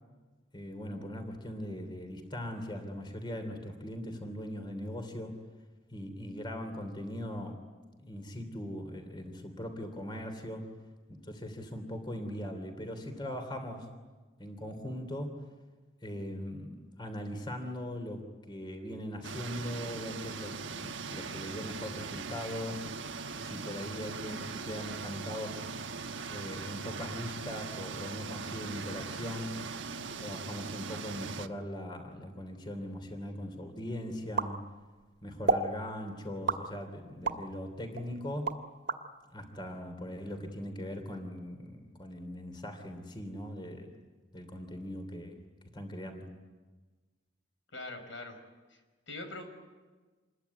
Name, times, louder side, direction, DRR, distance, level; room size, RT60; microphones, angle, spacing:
voice 1, 0.5-5.4 5.9-7.6 8.0-10.7 11.1-13.9 14.4-15.4 16.0-22.9 23.3-25.6 26.3-29.6 30.2-34.6 35.2-38.6 39.3-43.9 44.3-45.4 45.7-46.3, equal, 25° left, 6 dB, 3.1 m, -40 dB
sound 1, 19.2-31.5, right 5 dB, 75° right, 1.2 m, -40 dB
sound 2, 34.4-35.0 35.5-35.7 36.5-37.5 37.9-39.0, right 4 dB, 60° right, 2.1 m, -31 dB
voice 2, 47.7-48.3 48.7-48.8 49.1-49.4, left 2 dB, 80° left, 6 dB, 5.2 m, -43 dB
27.5 x 21.5 x 9.6 m, 1.3 s
head